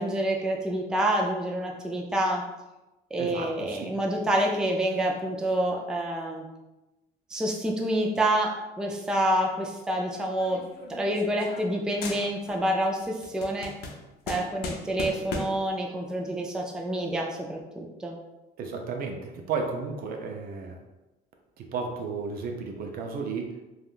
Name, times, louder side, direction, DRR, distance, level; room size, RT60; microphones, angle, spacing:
voice 1, 0.0-2.4 3.1-6.4 7.3-10.6 10.9-13.7 14.3-18.2, right 1 dB, 5° right, 0 dB, 0.3 m, -27 dB
voice 2, 3.2-4.0 18.6-20.8 21.6-23.5, right 4 dB, 60° right, 3 dB, 0.5 m, -33 dB
sound 1, 10.4-11.8 12.0-12.7 13.0-15.7, left 3 dB, 70° left, 0.5 m, -37 dB
3.5 x 2.2 x 2.4 m, 1.0 s
cardioid pair, 110°, 17 cm